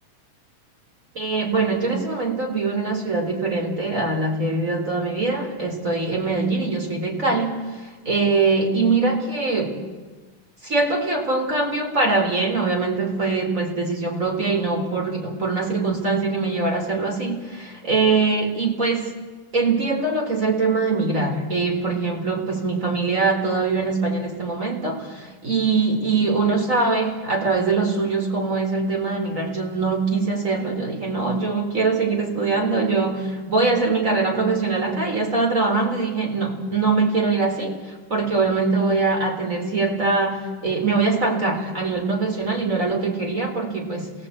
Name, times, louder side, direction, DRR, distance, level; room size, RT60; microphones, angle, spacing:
voice 1, 1.1-9.8 10.6-19.1 19.5-44.1, right 3 dB, 25° right, 2 dB, 3.9 m, -23 dB
29.5 x 17.0 x 8.6 m, 1.4 s
omnidirectional pair, 3.7 m